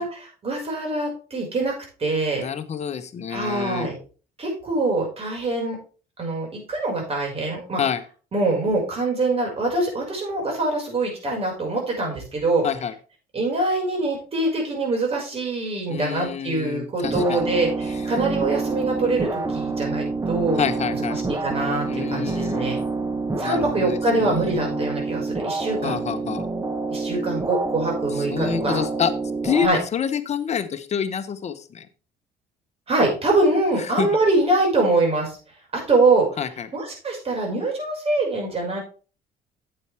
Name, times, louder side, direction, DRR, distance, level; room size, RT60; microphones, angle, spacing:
voice 1, 0.0-1.7 2.0-2.4 3.3-4.0 4.4-5.8 6.2-7.8 8.3-12.7 13.3-20.6 21.3-22.8 23.4-26.0 26.9-28.8 29.6-29.8 32.9-35.4 35.7-36.4 36.7-38.8, right 2 dB, 35° right, 0 dB, 5.7 m, -24 dB
voice 2, 2.4-3.9 7.8-8.0 12.6-12.9 15.9-17.4 20.6-21.2 21.9-22.8 23.4-24.9 25.8-26.5 28.1-29.1 29.4-31.9 34.0-34.1 36.4-36.7, left 7 dB, 40° left, 11 dB, 1.1 m, -28 dB
sound 1, 17.0-29.7, right 3 dB, 20° right, 1.2 m, -27 dB
8.9 x 8.7 x 3.5 m, 0.37 s
cardioid pair, 110°, 17 cm